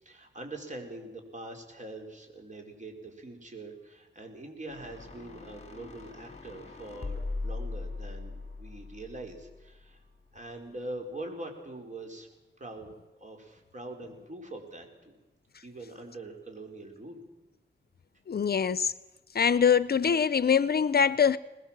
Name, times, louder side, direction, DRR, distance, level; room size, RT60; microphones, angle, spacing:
voice 1, 0.0-10.0 10.3-12.3 12.6-12.9 13.2-15.2 15.6-17.2, right 2 dB, 40° right, 4.6 m, -43 dB
sound 1, 4.7-10.0, left 3 dB, 35° left, 2.6 m, -40 dB
voice 2, 18.3-18.9 19.3-21.4, left 7 dB, 50° left, 0.6 m, -23 dB
21.0 x 20.0 x 7.5 m
cardioid pair, 75°, 20 cm